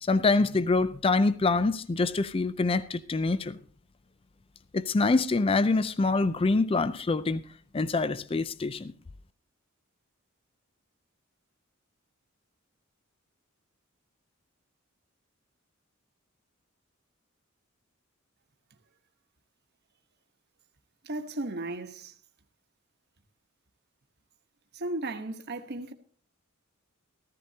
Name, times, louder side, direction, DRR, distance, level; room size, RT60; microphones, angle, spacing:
voice 1, 0.0-3.6 4.7-7.4 7.7-8.9, left 3 dB, 25° left, 0.4 m, -25 dB
voice 2, 21.0-22.1 24.7-25.9, right 2 dB, 50° right, 1.1 m, -35 dB
14.5 x 14.5 x 2.8 m
head